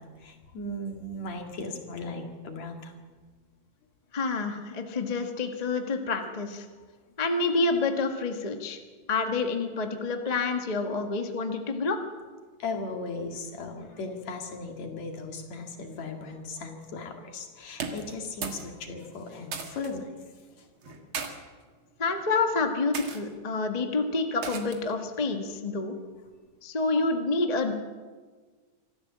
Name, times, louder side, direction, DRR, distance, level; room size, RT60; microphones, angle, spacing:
voice 1, 0.0-2.9 12.6-20.1, left 2 dB, 65° left, 3 dB, 3.4 m, -37 dB
voice 2, 4.1-6.7 7.2-8.8 9.1-12.0 22.0-25.9 26.6-27.7, left 3 dB, 35° left, 5 dB, 0.6 m, -28 dB
sound 1, 17.7-18.7 19.0-19.9 20.8-21.3 22.1-22.3 22.9-23.2 24.4-24.9, right 5 dB, 45° right, 2.3 m, -36 dB
25.0 x 14.0 x 7.5 m, 1.5 s
omnidirectional pair, 3.5 m